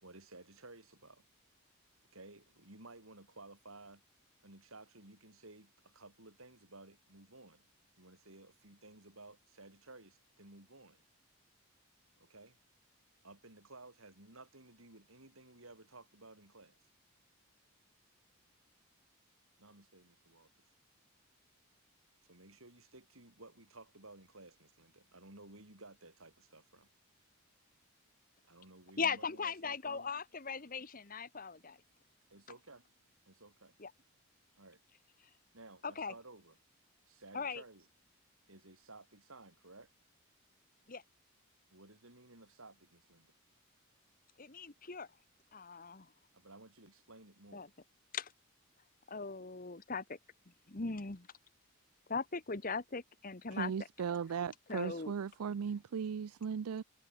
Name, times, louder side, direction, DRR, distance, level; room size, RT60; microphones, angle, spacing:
voice 1, 0.0-1.2 2.1-4.0 4.4-7.6 8.0-11.0 12.2-12.6 13.2-16.8 19.6-20.5 22.2-26.9 28.5-30.2 32.3-33.7 34.6-34.8 35.5-36.6 37.1-37.9 38.5-39.9 41.7-43.3 46.3-47.7, right 2 dB, 65° right, 5.3 m, -56 dB
voice 2, 29.0-31.8 33.8-33.9 35.8-36.1 37.3-37.6 40.9-41.0 44.4-45.1 45.5-46.1 47.5-47.7 48.1-48.3 49.1-50.2 50.7-51.3 52.1-53.7 54.7-55.1, left 5 dB, 40° left, 1.2 m, -39 dB
voice 3, 53.5-56.8, right 6 dB, 80° right, 0.4 m, -37 dB
head